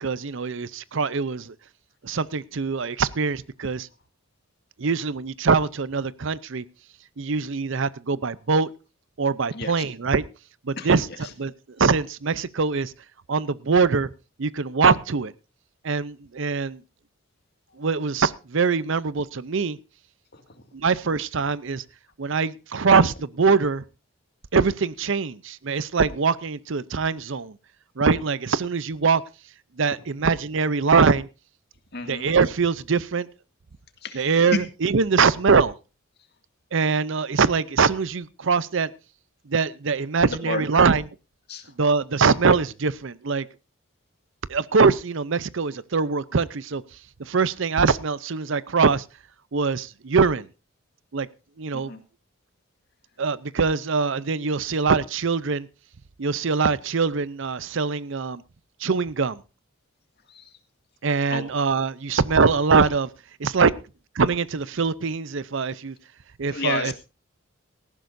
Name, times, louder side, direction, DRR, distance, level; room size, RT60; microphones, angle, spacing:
voice 1, 0.0-1.5 2.0-3.9 4.8-6.6 7.2-8.7 9.2-10.2 10.6-11.1 11.4-11.5 11.8-12.9 13.3-14.1 14.4-15.3 15.8-16.8 17.8-19.8 20.7-21.8 22.2-23.8 24.5-27.6 28.0-29.2 29.8-31.3 32.1-33.3 34.1-35.7 36.7-38.9 39.5-41.0 41.8-43.5 44.5-46.8 47.2-49.0 49.5-50.5 51.1-51.3 51.6-51.9 53.2-55.7 56.2-58.4 58.8-59.4 61.0-63.1 63.4-63.7 64.1-65.9 66.4-66.9, right 5 dB, 60° right, 0.6 m, -23 dB
voice 2, 9.5-9.8 10.8-11.3 20.3-20.6 31.9-32.3 34.0-34.6 40.2-40.9 41.5-41.7 51.7-52.0 60.3-60.6 61.3-61.4 66.5-67.0, left 3 dB, 50° left, 2.1 m, -32 dB
18.5 x 14.5 x 2.6 m
head